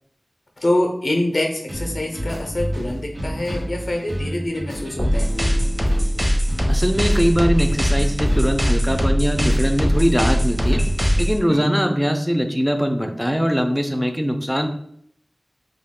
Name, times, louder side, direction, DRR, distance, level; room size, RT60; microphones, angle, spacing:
voice 1, 0.6-5.3 11.5-11.7, left 1 dB, 65° left, 1 dB, 0.5 m, -25 dB
sound 1, 1.7-11.3, equal, 75° right, 0.8 m, -30 dB
sound 2, 5.0-11.4, equal, 25° right, 0.8 m, -20 dB
voice 2, 6.7-10.8 11.2-14.7, equal, ahead, 5 dB, 0.4 m, -21 dB
2.3 x 2.3 x 3.5 m, 0.67 s
wide cardioid pair, 40°, 0 cm